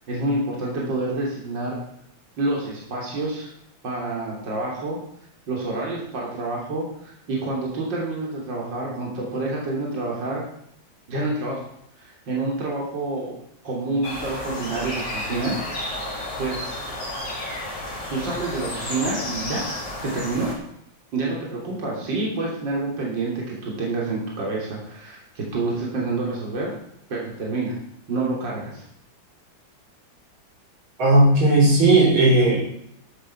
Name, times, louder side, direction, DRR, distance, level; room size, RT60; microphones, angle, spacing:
voice 1, 0.1-1.8 2.4-3.5 3.8-5.0 5.5-10.4 11.1-11.6 12.0-13.4 13.6-15.6 16.4-16.8 18.1-19.7 20.0-20.5 21.1-26.8 27.1-27.8 28.1-28.8, right 2 dB, 65° right, -3 dB, 3.7 m, -28 dB
sound 1, 14.0-20.5, left 1 dB, 55° left, 4.0 m, -32 dB
voice 2, 31.0-32.6, right 2 dB, 90° right, -1 dB, 4.4 m, -16 dB
14.0 x 8.0 x 5.8 m, 0.73 s
omnidirectional pair, 2.2 m